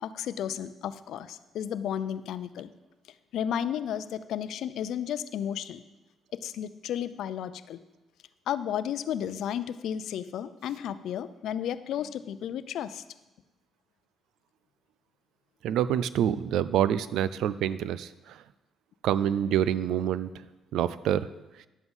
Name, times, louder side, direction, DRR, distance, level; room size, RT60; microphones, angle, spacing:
voice 1, 0.0-2.7 3.3-5.8 6.3-7.8 8.5-13.0, left 9 dB, 80° left, 14 dB, 0.5 m, -33 dB
voice 2, 15.6-18.4 19.0-20.3 20.7-21.3, right 10 dB, 85° right, 16 dB, 0.4 m, -26 dB
11.0 x 8.0 x 5.5 m, 1.0 s
cardioid pair, 90°, 0 cm